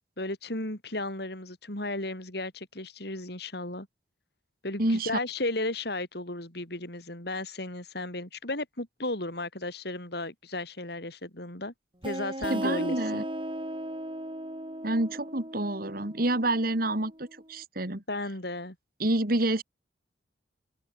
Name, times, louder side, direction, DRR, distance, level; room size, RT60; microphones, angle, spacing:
voice 1, 0.2-3.9 4.6-11.7 12.0-13.2 18.1-18.7, left 2 dB, 60° left, 4.9 m, -34 dB
voice 2, 4.8-5.2 12.5-13.2 14.8-18.0 19.0-19.6, right 1 dB, 50° right, 2.4 m, -28 dB
sound 1, 12.0-17.4, right 1 dB, 25° right, 6.3 m, -37 dB
open air
head